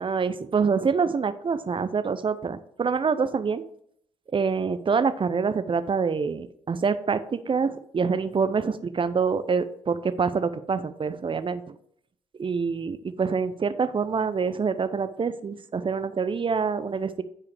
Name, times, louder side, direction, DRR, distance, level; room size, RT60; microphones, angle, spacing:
voice 1, 0.0-3.6 4.3-11.8 12.4-17.2, right 5 dB, 30° right, 13 dB, 0.7 m, -26 dB
9.6 x 4.8 x 3.4 m, 0.67 s
hypercardioid pair, 45°, 16 cm